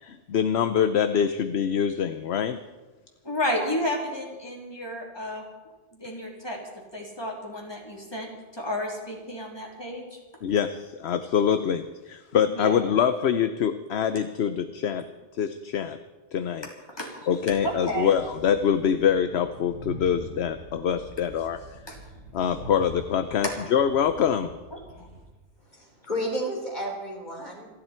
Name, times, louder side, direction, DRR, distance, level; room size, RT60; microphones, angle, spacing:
voice 1, 0.0-2.6 10.4-15.0 15.4-16.0 16.3-16.7 17.3-21.6 22.3-24.5, left 8 dB, 60° left, 10 dB, 1.0 m, -25 dB
voice 2, 3.2-5.4 5.9-6.6 6.9-10.2 12.5-12.8 17.0-17.2 17.6-18.1 21.9-22.0 23.4-23.5 24.7-25.1, equal, 20° left, -1 dB, 3.5 m, -31 dB
Train, 17.4-25.2, right 2 dB, 85° right, 5.0 m, -45 dB
voice 3, 25.6-27.7, equal, 35° left, 0 dB, 3.9 m, -32 dB
28.5 x 11.5 x 4.4 m, 1.2 s
omnidirectional pair, 1.3 m